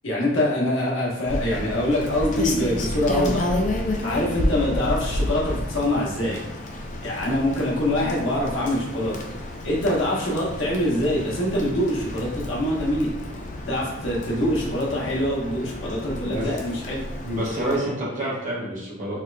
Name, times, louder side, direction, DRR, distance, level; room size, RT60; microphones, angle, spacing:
voice 1, 0.0-3.5 4.0-6.4 7.0-9.1 9.6-13.1 13.7-17.0, left 1 dB, 85° left, -4 dB, 1.1 m, -24 dB
Rain, 1.3-17.8, left 1 dB, 40° left, 0.4 m, -31 dB
voice 2, 16.2-16.5 17.2-19.2, right 1 dB, 40° right, -6 dB, 1.1 m, -28 dB
4.2 x 2.5 x 2.2 m, 0.90 s
head